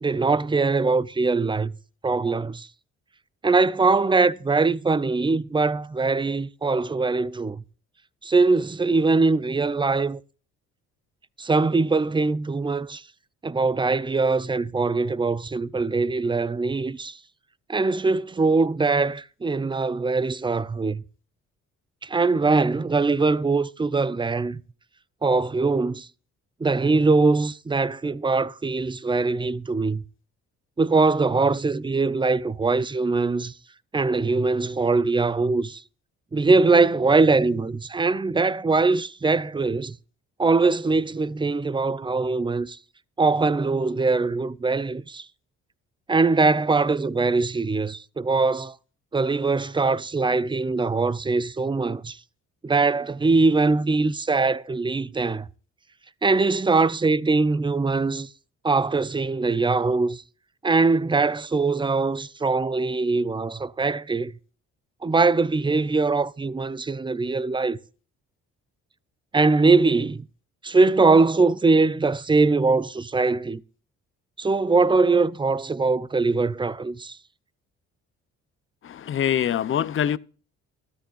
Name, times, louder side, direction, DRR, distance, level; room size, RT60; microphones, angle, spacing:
voice 1, 0.0-1.7 2.0-2.7 3.4-7.6 8.2-10.2 11.4-13.0 13.4-17.2 17.7-21.0 22.0-24.6 25.2-26.1 26.6-30.0 30.8-33.5 33.9-35.8 36.3-40.0 40.4-42.8 43.2-45.3 46.1-48.8 49.1-52.2 52.6-55.5 56.2-58.3 58.6-60.2 60.6-64.3 65.0-67.8 69.3-70.3 70.6-73.6 74.4-77.2, right 3 dB, 15° right, 0.5 m, -22 dB
voice 2, 79.1-80.2, left 9 dB, 45° left, 0.6 m, -23 dB
13.0 x 12.5 x 2.4 m
cardioid pair, 90°, 30 cm